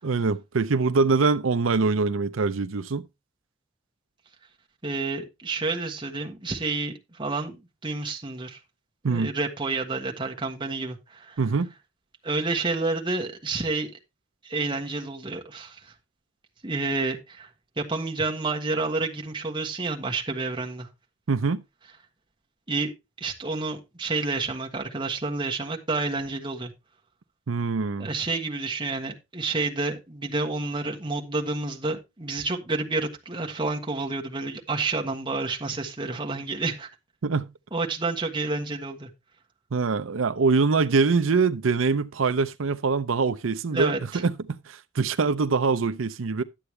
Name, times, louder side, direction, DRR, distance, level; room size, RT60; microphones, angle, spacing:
voice 1, 0.0-3.0 9.0-9.3 11.4-11.7 21.3-21.6 27.5-28.1 37.2-37.5 39.7-46.4, right 4 dB, 90° right, 0.6 m, -24 dB
voice 2, 4.8-7.6 7.8-8.6 9.0-11.4 12.2-13.9 14.4-15.9 16.6-17.5 17.8-20.9 22.7-22.9 23.2-26.7 28.0-36.9 37.7-39.1 43.7-44.2, right 3 dB, 25° right, 1.5 m, -29 dB
11.5 x 8.0 x 3.3 m
head